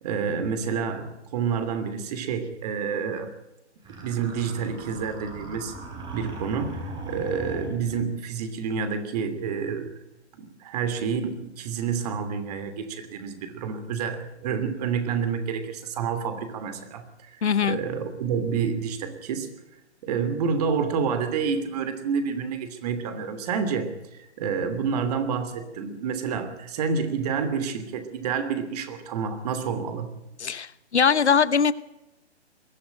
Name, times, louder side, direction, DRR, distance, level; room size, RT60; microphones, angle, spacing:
voice 1, 0.0-1.1 1.3-3.3 4.0-5.7 6.1-9.9 10.3-19.5 20.0-30.1, right 6 dB, 35° right, 10 dB, 2.9 m, -29 dB
sound 1, 3.8-8.2, right 2 dB, 15° right, 3.4 m, -39 dB
voice 2, 17.4-17.8 30.4-31.7, left 6 dB, 75° left, 17 dB, 1.1 m, -21 dB
21.5 x 14.0 x 9.2 m, 0.93 s
figure-of-eight pair, 140°, 34 cm